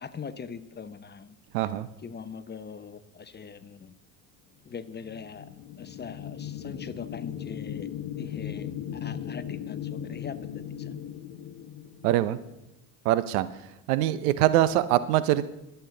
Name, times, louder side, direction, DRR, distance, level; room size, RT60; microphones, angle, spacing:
voice 1, 0.0-1.4 2.0-3.9 4.6-5.5 5.8-7.9 8.2-10.9 14.3-14.4, left 6 dB, 25° left, 12 dB, 0.8 m, -42 dB
voice 2, 1.5-1.9 12.0-12.4 13.0-13.5 13.9-15.5, right 13 dB, 75° right, 15 dB, 0.8 m, -23 dB
sound 1, 5.0-12.6, left 9 dB, 50° left, 1.3 m, -37 dB
22.0 x 8.1 x 4.0 m, 0.91 s
hypercardioid pair, 75°, 44 cm